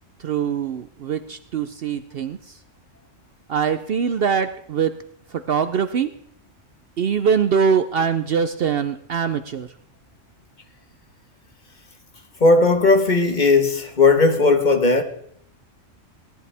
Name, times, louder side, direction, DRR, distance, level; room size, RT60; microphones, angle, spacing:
voice 1, 0.2-2.5 3.5-5.0 5.3-6.1 7.0-9.7, right 6 dB, 60° right, 0.7 m, -23 dB
voice 2, 12.4-15.0, left 3 dB, 40° left, 1.3 m, -16 dB
17.5 x 11.0 x 3.4 m
omnidirectional pair, 1.3 m